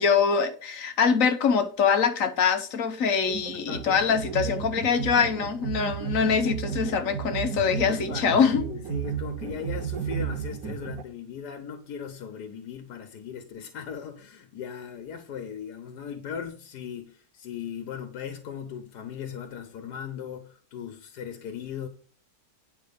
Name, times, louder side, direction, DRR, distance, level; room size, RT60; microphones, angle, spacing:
voice 1, 0.0-8.6, left 6 dB, 60° left, 1.3 m, -24 dB
sound 1, 3.2-11.0, right 8 dB, 65° right, 1.3 m, -33 dB
voice 2, 3.5-4.7 7.9-21.9, left 7 dB, 85° left, 1.5 m, -38 dB
9.8 x 5.5 x 5.2 m
omnidirectional pair, 1.7 m